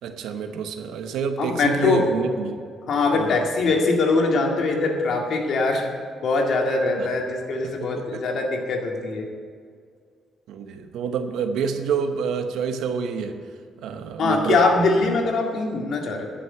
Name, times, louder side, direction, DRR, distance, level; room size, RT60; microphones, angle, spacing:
voice 1, 0.0-2.6 3.1-3.4 7.0-7.1 7.6-8.2 10.5-13.4 13.8-14.6, right 6 dB, 85° right, 7 dB, 1.0 m, -28 dB
voice 2, 1.4-2.1 2.9-5.9 6.2-9.3 14.2-16.3, left 3 dB, 65° left, 1 dB, 2.0 m, -22 dB
11.5 x 6.2 x 9.0 m, 2.1 s
cardioid pair, 90°, 0 cm